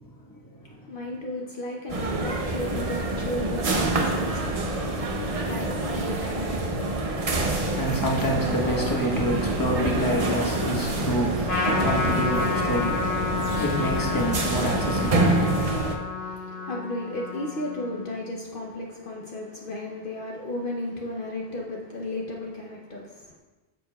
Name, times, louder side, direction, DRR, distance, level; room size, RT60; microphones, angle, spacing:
voice 1, 0.0-1.0 7.2-15.4, equal, 20° left, -1 dB, 1.1 m, -28 dB
voice 2, 0.6-6.9 16.2-23.4, left 1 dB, 60° left, -1 dB, 0.9 m, -35 dB
sound 1, 1.9-16.0, right 2 dB, 40° right, 0.7 m, -27 dB
Trumpet, 11.5-18.2, left 4 dB, 75° left, 1.6 m, -30 dB
9.2 x 6.7 x 2.3 m, 1.2 s
omnidirectional pair, 1.1 m